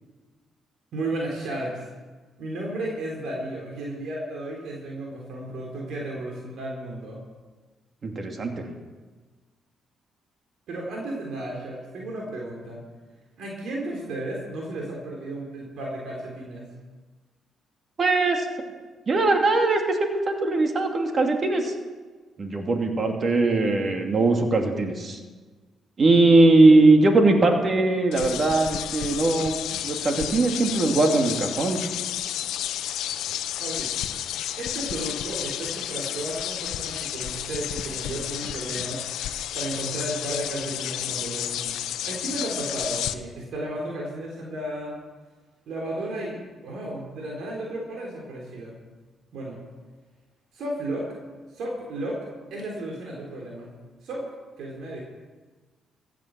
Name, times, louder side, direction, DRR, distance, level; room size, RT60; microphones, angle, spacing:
voice 1, 0.9-1.9 2.4-7.2 10.7-12.8 13.4-16.7 33.6-33.9 34.6-39.0 39.5-41.8 42.0-45.0 45.7-46.4 46.6-48.8 49.3-49.6 50.5-51.2 51.5-53.7 54.0-54.3 54.6-55.0, right 1 dB, 75° right, -2 dB, 3.7 m, -33 dB
voice 2, 8.0-8.7 18.0-18.5 19.1-21.7 22.4-25.2 26.0-29.5 29.8-31.8, right 2 dB, 45° right, 3 dB, 2.6 m, -20 dB
sound 1, 28.1-43.1, left 11 dB, 85° left, 0.7 m, -31 dB
15.5 x 9.2 x 7.6 m, 1.4 s
cardioid pair, 80°, 0 cm